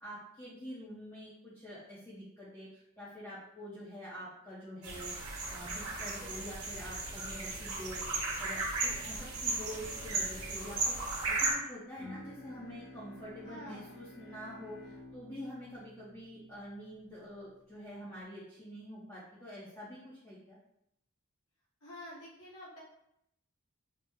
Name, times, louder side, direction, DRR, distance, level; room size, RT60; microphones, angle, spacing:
voice 1, 0.0-5.1 5.5-8.0 8.4-11.0 11.3-20.6, equal, 15° left, -10 dB, 0.6 m, -46 dB
sound 1, 4.8-11.5, right 3 dB, 75° right, 0.7 m, -35 dB
Bowed string instrument, 11.9-17.4, left 2 dB, 60° left, 0.6 m, -52 dB
voice 2, 13.4-14.0 21.8-22.8, equal, 75° left, -7 dB, 1.1 m, -48 dB
2.9 x 2.0 x 3.4 m, 0.78 s
head